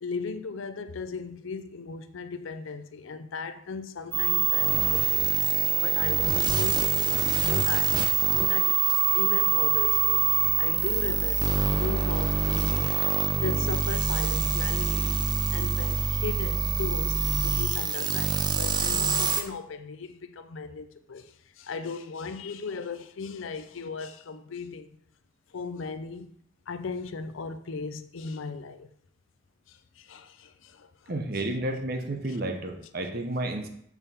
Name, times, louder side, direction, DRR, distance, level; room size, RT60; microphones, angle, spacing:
voice 1, 0.0-5.4 5.8-8.9 9.1-10.2 10.6-13.0 13.4-15.2 15.5-24.9 25.5-26.4 26.7-28.9 29.7-31.1 32.3-32.4, left 4 dB, 70° left, 0.5 m, -37 dB
sound 1, 4.1-19.4, right 7 dB, 20° right, 0.4 m, -25 dB
voice 2, 31.1-33.7, right 1 dB, 45° right, 0.8 m, -31 dB
7.1 x 3.6 x 5.6 m
head